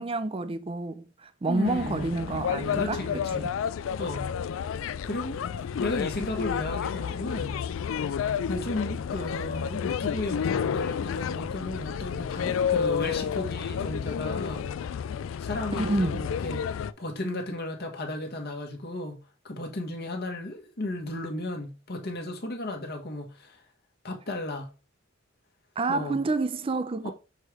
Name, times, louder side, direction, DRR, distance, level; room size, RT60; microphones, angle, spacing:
voice 1, 0.0-3.5 15.7-16.2 25.8-27.1, right 3 dB, 30° right, 0.5 m, -29 dB
voice 2, 1.5-2.1 2.7-3.5 4.0-4.3 5.0-5.4 5.8-7.6 8.5-14.7 15.4-19.2 19.4-23.6 24.0-24.7 25.9-26.2 27.0-27.1, left 1 dB, 55° left, 1.3 m, -34 dB
sound 1, 1.6-16.9, left 7 dB, 75° left, 0.3 m, -30 dB
6.4 x 3.2 x 4.9 m
head